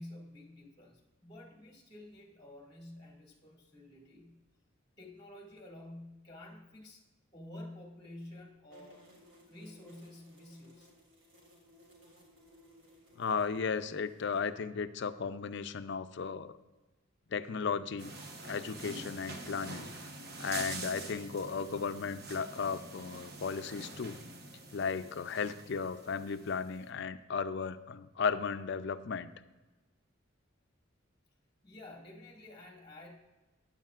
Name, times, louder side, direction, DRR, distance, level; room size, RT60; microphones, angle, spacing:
voice 1, 0.0-4.4 5.0-7.0 7.3-9.1 9.5-10.9 31.6-33.2, left 1 dB, 20° left, -1 dB, 2.0 m, -50 dB
sound 1, 8.7-14.4, equal, 75° right, 2.9 m, -60 dB
voice 2, 13.2-16.6 17.3-18.1 18.4-19.9 20.4-24.2 24.7-29.3, left 5 dB, 60° left, 11 dB, 0.5 m, -35 dB
sound 2, 18.0-26.8, right 2 dB, 55° right, 1.1 m, -46 dB
15.0 x 9.7 x 2.4 m, 1.2 s
head